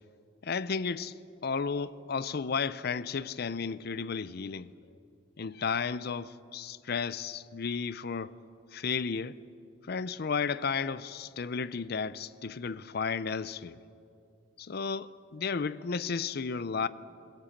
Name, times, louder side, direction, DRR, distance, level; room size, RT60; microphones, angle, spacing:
voice 1, 0.4-1.1 1.4-4.7 5.4-8.4 8.7-9.4 9.9-13.8 14.6-16.9, left 5 dB, 55° left, 0.5 m, -33 dB
23.0 x 15.0 x 8.7 m
head